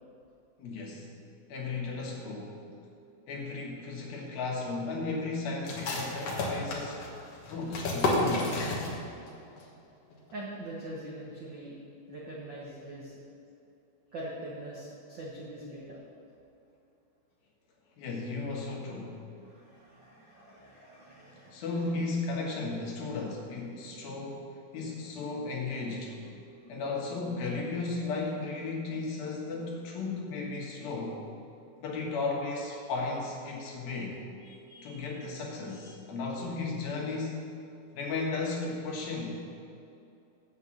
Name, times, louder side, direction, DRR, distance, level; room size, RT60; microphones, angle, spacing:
voice 1, 0.6-1.1 1.5-2.6 3.3-7.0 7.4-8.6 18.0-19.2 21.5-24.5 24.7-26.2 26.7-31.2 31.8-34.2 34.8-37.5 37.9-39.4, left 3 dB, 75° left, -2 dB, 3.3 m, -35 dB
sound 1, 5.7-9.3 9.6-9.7 10.1-10.6, left 2 dB, 55° left, 2.0 m, -31 dB
voice 2, 10.3-11.8 12.1-13.1 14.1-16.0 19.4-21.7 34.4-35.2 35.8-35.9, right 1 dB, 85° right, -5 dB, 1.0 m, -43 dB
8.1 x 7.4 x 7.3 m, 2.7 s
omnidirectional pair, 4.3 m